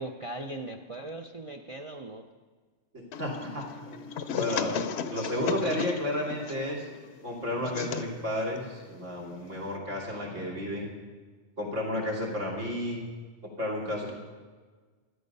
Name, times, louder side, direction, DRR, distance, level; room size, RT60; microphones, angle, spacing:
voice 1, 0.0-2.3, right 2 dB, 35° right, 3 dB, 0.6 m, -39 dB
voice 2, 2.9-6.9 7.2-10.9 11.6-13.0 13.6-14.2, left 1 dB, 80° right, -2 dB, 3.1 m, -32 dB
sound 1, 3.1-9.8, left 7 dB, 65° left, 0.9 m, -36 dB
12.5 x 12.0 x 5.4 m, 1.4 s
omnidirectional pair, 1.3 m